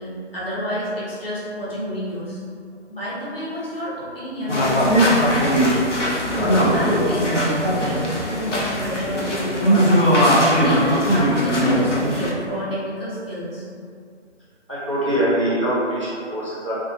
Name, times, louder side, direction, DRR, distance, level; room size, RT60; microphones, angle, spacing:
voice 1, 0.0-2.4 2.9-5.9 6.7-10.1 10.6-13.7, equal, 55° left, -9 dB, 1.1 m, -29 dB
sound 1, 4.5-12.3, equal, 80° left, 0.8 m, -19 dB
voice 2, 14.7-16.7, right 1 dB, 25° right, -9 dB, 0.4 m, -23 dB
2.7 x 2.4 x 2.7 m, 2.2 s
figure-of-eight pair, 145°, 36 cm